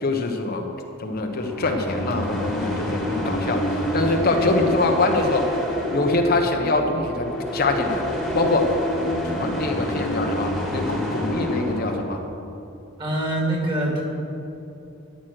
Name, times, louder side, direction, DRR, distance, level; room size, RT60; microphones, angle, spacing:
voice 1, 0.0-0.7 1.0-5.4 5.9-7.2 7.5-8.7 9.3-12.2, left 2 dB, 45° left, 3 dB, 1.1 m, -24 dB
sound 1, 1.1-12.2, equal, ahead, 1.9 m, -27 dB
voice 2, 2.6-3.3 4.3-4.5 13.0-14.0, right 1 dB, 25° right, -1 dB, 2.6 m, -27 dB
13.5 x 10.5 x 6.4 m, 3.0 s
head